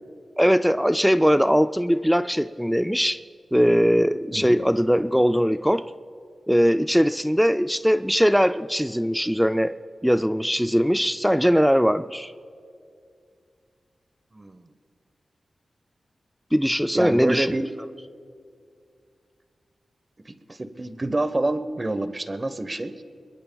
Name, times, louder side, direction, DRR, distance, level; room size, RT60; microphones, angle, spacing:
voice 1, 0.4-3.2 3.5-5.9 6.5-9.8 10.0-12.3 16.5-17.5, equal, ahead, 11 dB, 0.3 m, -20 dB
voice 2, 14.3-14.7 16.9-17.7 20.3-22.9, right 2 dB, 30° right, 11 dB, 1.0 m, -27 dB
29.0 x 21.5 x 2.3 m, 2.3 s
wide cardioid pair, 80°, 0 cm